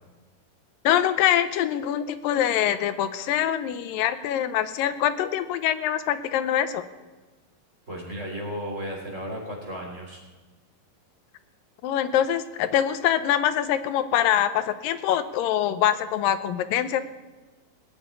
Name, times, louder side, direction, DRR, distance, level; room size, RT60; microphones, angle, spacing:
voice 1, 0.8-6.9 11.8-17.0, left 10 dB, 85° left, 12 dB, 2.4 m, -24 dB
voice 2, 7.9-10.2, equal, 20° right, -1 dB, 3.2 m, -34 dB
19.0 x 7.1 x 9.5 m, 1.2 s
omnidirectional pair, 4.0 m